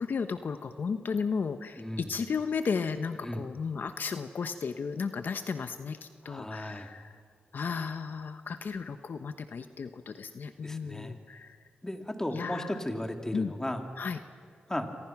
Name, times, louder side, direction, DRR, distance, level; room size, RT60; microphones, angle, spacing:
voice 1, 0.0-7.2 7.5-11.6 12.3-12.8 13.3-13.5 14.0-14.2, left 5 dB, 65° left, 9 dB, 1.0 m, -34 dB
voice 2, 1.8-2.1 3.2-3.4 6.2-6.9 10.6-11.1 11.8-13.8 14.7-14.9, left 1 dB, 15° left, 4 dB, 2.9 m, -35 dB
28.0 x 25.0 x 6.0 m, 2.1 s
cardioid pair, 50°, 4 cm